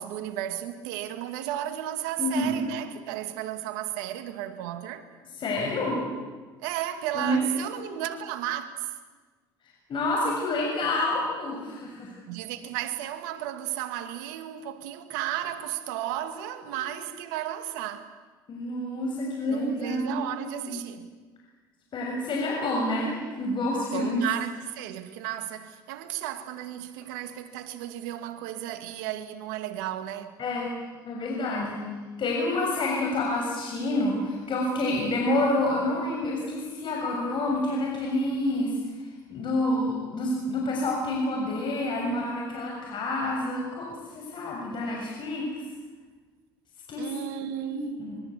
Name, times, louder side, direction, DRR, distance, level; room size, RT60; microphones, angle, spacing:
voice 1, 0.0-5.1 6.6-8.9 12.3-18.1 19.5-21.1 23.9-30.4 47.0-47.9, right 12 dB, 85° right, 2.1 m, -34 dB
voice 2, 2.2-2.6 5.3-6.0 7.1-7.4 7.7-7.8 9.9-12.2 16.8-16.9 18.5-20.8 21.9-24.2 30.4-30.7 31.0-31.8 32.2-38.8 39.3-43.9 44.1-45.5 46.9-47.1 47.7-48.2, left 1 dB, 50° left, 6.7 m, -28 dB
24.5 x 23.0 x 8.4 m
supercardioid pair, 80°, 10 cm